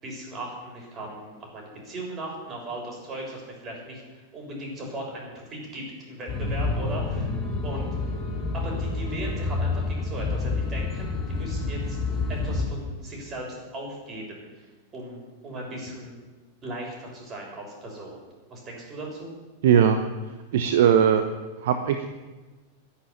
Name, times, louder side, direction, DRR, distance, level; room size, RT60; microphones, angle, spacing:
voice 1, 0.0-7.3 7.6-7.9 8.5-12.0 12.3-14.7 14.9-16.2 16.6-18.2 18.5-19.3, right 1 dB, 25° right, -1 dB, 7.0 m, -37 dB
sound 1, 6.3-12.7, left 3 dB, 25° left, 4.0 m, -28 dB
voice 2, 19.6-20.0 20.5-21.2 21.6-22.1, right 8 dB, 55° right, 7 dB, 1.0 m, -19 dB
12.0 x 11.0 x 10.0 m, 1.2 s
figure-of-eight pair, 90°, 0 cm